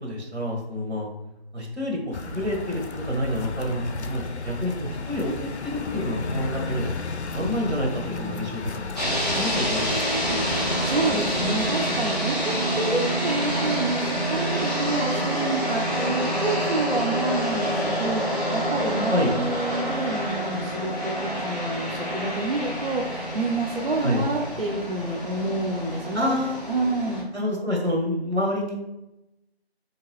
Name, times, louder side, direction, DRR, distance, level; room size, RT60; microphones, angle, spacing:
voice 1, 0.0-1.1 1.5-7.0 7.3-9.9 19.1-19.3 24.0-24.2 26.1-26.6 27.3-28.8, left 1 dB, 90° right, 0 dB, 1.2 m, -28 dB
sound 1, 2.1-11.7, left 4 dB, 85° left, 0.5 m, -34 dB
sound 2, 9.0-27.2, equal, ahead, 0.7 m, -27 dB
voice 2, 10.4-26.4 26.7-27.3, right 2 dB, 60° right, 0 dB, 0.5 m, -28 dB
3.4 x 2.9 x 3.0 m, 0.90 s
figure-of-eight pair, 180°, 33 cm